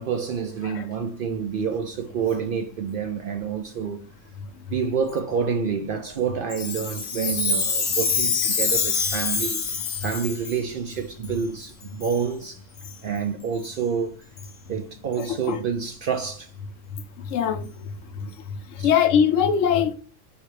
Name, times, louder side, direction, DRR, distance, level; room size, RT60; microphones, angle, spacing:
voice 1, 0.0-4.0 4.7-12.6 13.0-14.2 14.7-16.5 18.8-18.9, right 6 dB, 60° right, 0.5 m, -28 dB
Chime, 6.5-10.6 11.2-11.3 12.0-12.2 12.8-12.9 13.6-13.7 14.4-14.5 15.2-15.3, left 4 dB, 55° left, 1.0 m, -26 dB
voice 2, 17.3-17.6 18.8-19.9, left 8 dB, 85° left, 1.0 m, -20 dB
4.5 x 3.3 x 3.1 m
omnidirectional pair, 1.3 m